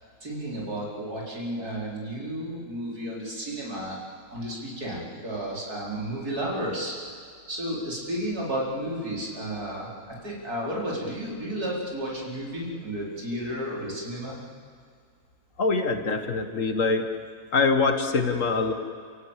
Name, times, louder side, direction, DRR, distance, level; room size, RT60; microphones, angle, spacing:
voice 1, 0.2-4.0 4.3-6.9 7.5-9.9 10.2-14.4, right 1 dB, 85° right, -4 dB, 5.0 m, -32 dB
voice 2, 15.6-17.1 17.5-18.7, left 4 dB, 60° left, 7 dB, 1.9 m, -24 dB
28.5 x 17.0 x 8.3 m, 2.1 s
omnidirectional pair, 1.6 m